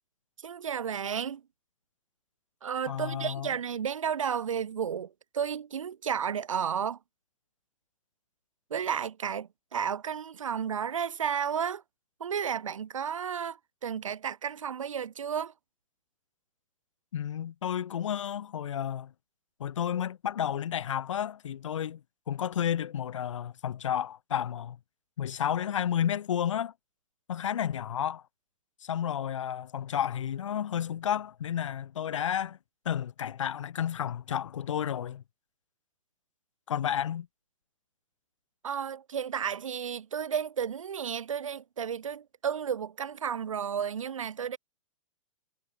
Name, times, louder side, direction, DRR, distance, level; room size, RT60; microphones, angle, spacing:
voice 1, 0.4-1.4 2.6-7.0 8.7-11.8 12.2-15.5 38.6-44.6, right 8 dB, 65° right, 2.1 m, -32 dB
voice 2, 2.9-3.5 17.1-19.1 19.6-22.0 22.3-24.8 25.2-26.7 27.3-28.2 28.8-32.6 32.8-35.2 36.7-37.3, left 9 dB, 60° left, 2.4 m, -31 dB
figure-of-eight pair, 105°, 18 cm